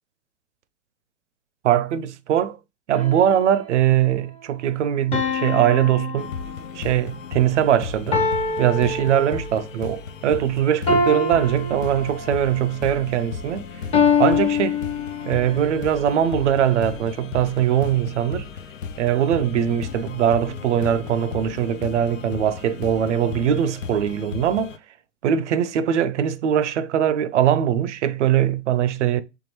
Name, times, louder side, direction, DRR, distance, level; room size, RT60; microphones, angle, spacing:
voice 1, 1.6-2.6 2.9-6.3 6.7-8.2 8.6-13.6 14.2-14.8 15.2-18.5 19.0-24.8 25.2-29.2, right 10 dB, 65° right, 0.5 m, -21 dB
sound 1, 2.9-3.8 5.1-7.0 8.1-9.7 10.9-12.5 13.9-15.6, left 4 dB, 15° left, 0.7 m, -24 dB
sound 2, 6.2-24.8, left 6 dB, 80° left, 0.6 m, -35 dB
3.5 x 3.5 x 3.0 m
hypercardioid pair, 115°, 38 cm